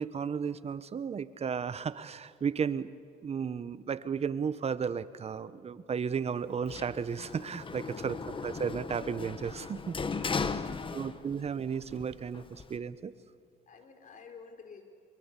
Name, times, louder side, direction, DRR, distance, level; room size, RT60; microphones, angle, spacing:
voice 1, 0.0-2.9 3.2-8.2 8.4-10.6 10.9-13.1, right 6 dB, 40° right, 15 dB, 1.0 m, -34 dB
Sliding door, 6.7-11.5 11.8-12.8, left 4 dB, 30° left, 1.4 m, -37 dB
voice 2, 10.4-11.2 13.7-14.8, left 5 dB, 50° left, 6 dB, 3.8 m, -52 dB
23.0 x 23.0 x 8.4 m, 2.3 s
supercardioid pair, 80°, 17 cm